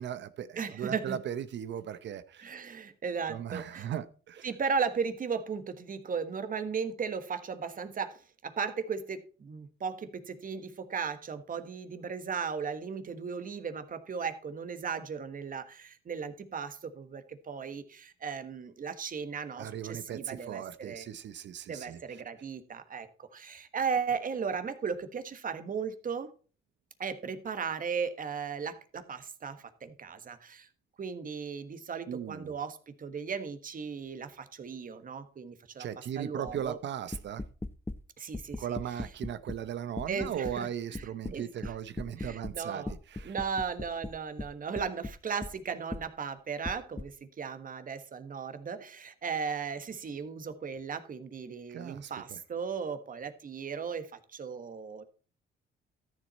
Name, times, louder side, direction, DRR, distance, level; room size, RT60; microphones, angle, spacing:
voice 1, 0.0-2.6 3.3-4.5 19.6-22.0 32.1-32.6 35.8-37.4 38.6-43.3 51.7-52.4, right 9 dB, 65° right, 0.8 m, -38 dB
voice 2, 0.6-1.2 2.4-3.9 4.4-21.1 21.7-26.3 27.0-30.7 31.0-35.9 36.2-36.8 38.2-38.8 40.1-40.7 41.0-41.4 42.2-42.9 43.2-55.0, right 6 dB, 45° right, 1.4 m, -36 dB
sound 1, 36.5-36.7 37.1-38.0 38.3-39.7 40.0-40.6 40.9-42.6 42.9-45.6 45.9-46.1 46.6-47.1, left 2 dB, 10° left, 0.6 m, -38 dB
13.5 x 7.3 x 4.1 m
cardioid pair, 90°, 20 cm